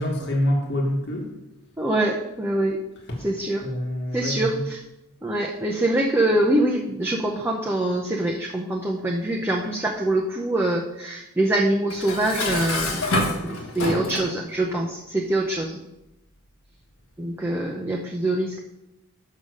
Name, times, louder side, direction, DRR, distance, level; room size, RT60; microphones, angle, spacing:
voice 1, 0.0-1.3 3.1-3.2 3.6-4.7, left 1 dB, 55° left, 0 dB, 1.5 m, -26 dB
voice 2, 1.8-2.8 3.2-3.6 4.1-4.8 5.2-13.0 13.4-15.8 17.2-18.6, right 1 dB, 10° right, -2 dB, 0.6 m, -24 dB
Dishes pots and pans, 11.9-14.4, left 2 dB, 75° left, 1.2 m, -27 dB
6.6 x 5.5 x 6.3 m, 0.93 s
head